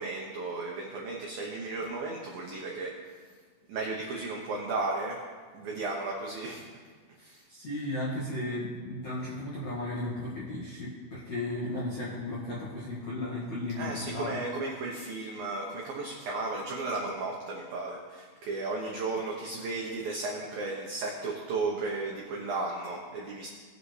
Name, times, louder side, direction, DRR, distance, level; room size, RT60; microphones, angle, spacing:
voice 1, 0.0-3.0 3.7-5.2 5.5-6.6 7.2-7.4 13.8-23.5, right 3 dB, 80° right, -1 dB, 2.0 m, -34 dB
voice 2, 7.2-14.4, left 1 dB, 55° left, -8 dB, 2.0 m, -35 dB
19.5 x 7.7 x 3.3 m, 1.5 s
omnidirectional pair, 5.8 m